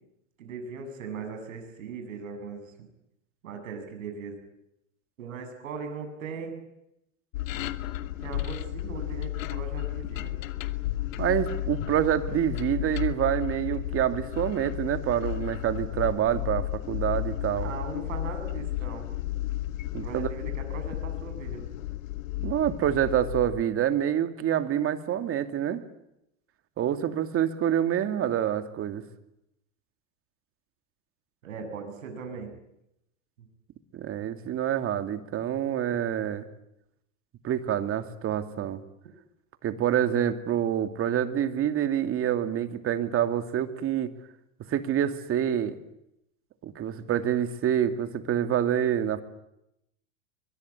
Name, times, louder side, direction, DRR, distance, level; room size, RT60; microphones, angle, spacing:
voice 1, 0.4-2.7 3.4-4.4 5.2-6.6 8.2-10.4 17.6-19.1 20.0-21.6 31.4-32.6 33.4-33.5, right 5 dB, 85° right, 6 dB, 7.6 m, -39 dB
sound 1, 7.3-23.6, left 15 dB, 80° left, 1.7 m, -33 dB
voice 2, 11.2-17.7 19.9-20.3 22.4-25.8 26.8-29.0 33.9-36.5 37.4-38.8 39.6-44.1 44.7-45.8 46.6-49.2, right 10 dB, 35° right, 9 dB, 2.5 m, -27 dB
23.5 x 22.0 x 9.6 m, 0.82 s
supercardioid pair, 120°, 39 cm